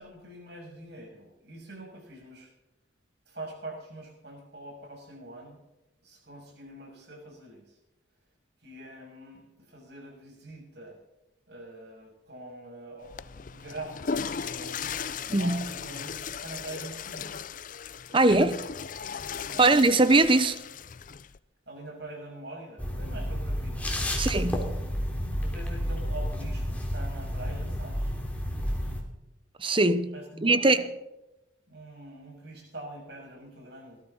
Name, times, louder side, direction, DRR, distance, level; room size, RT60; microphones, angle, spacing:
voice 1, 0.0-2.5 3.3-5.6 6.0-7.8 8.6-11.0 11.5-17.3 19.5-19.7 21.7-24.2 25.4-28.1 30.1-30.8 31.7-34.0, right 2 dB, 55° right, 6.7 m, -44 dB
Water / Toilet flush, 13.0-21.4, left 6 dB, 40° left, 0.5 m, -37 dB
voice 2, 15.3-15.6 18.1-18.6 19.6-20.6 24.2-24.7 29.6-30.1 30.4-30.8, right 2 dB, 25° right, 0.9 m, -21 dB
sound 1, 22.8-29.0, equal, 10° left, 2.9 m, -31 dB
19.0 x 13.0 x 4.1 m
head